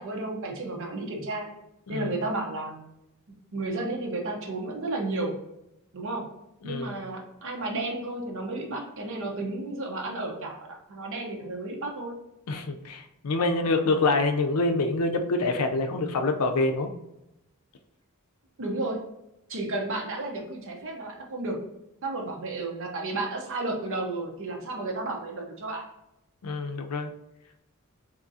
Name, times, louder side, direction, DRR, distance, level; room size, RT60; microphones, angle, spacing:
voice 1, 0.0-1.5 1.9-2.8 3.5-5.3 5.9-6.2 6.6-12.2 18.6-19.0 19.5-21.6 22.0-25.8, right 2 dB, 60° right, 1 dB, 0.8 m, -32 dB
voice 2, 6.6-7.0 12.5-16.9 26.4-27.1, left 3 dB, 85° left, 6 dB, 0.5 m, -26 dB
3.6 x 2.8 x 2.7 m, 0.86 s
head